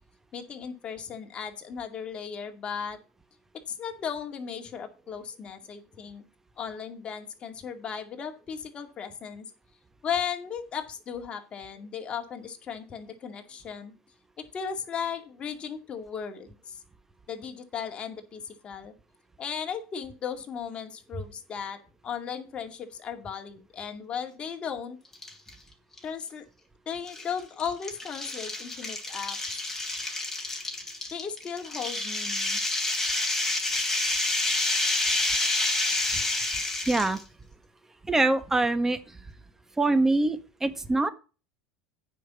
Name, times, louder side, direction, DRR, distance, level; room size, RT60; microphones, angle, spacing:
voice 1, 0.3-3.0 3.7-6.2 6.6-9.4 10.0-13.9 14.4-16.8 17.3-18.9 19.4-25.0 26.0-26.4 26.9-29.6 31.1-32.6, left 7 dB, 35° left, 5 dB, 2.2 m, -36 dB
sound 1, 25.1-25.5 26.0-26.1 27.1-37.2, left 2 dB, 10° left, 3.4 m, -29 dB
voice 2, 36.9-37.2 38.0-39.2 39.8-41.1, right 2 dB, 10° right, 11 dB, 1.3 m, -24 dB
9.3 x 5.7 x 7.0 m, 0.33 s
hypercardioid pair, 100°, 3 cm